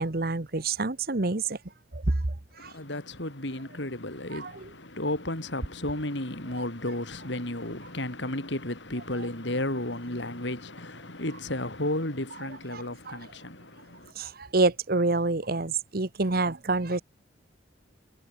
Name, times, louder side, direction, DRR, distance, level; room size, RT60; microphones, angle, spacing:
voice 1, 0.0-1.6 1.9-2.1 2.6-2.7 4.3-4.7 12.7-13.2 14.1-17.0, right 3 dB, 50° right, 1.2 m, -27 dB
voice 2, 2.6-14.1, left 1 dB, 70° left, 4.8 m, -33 dB
head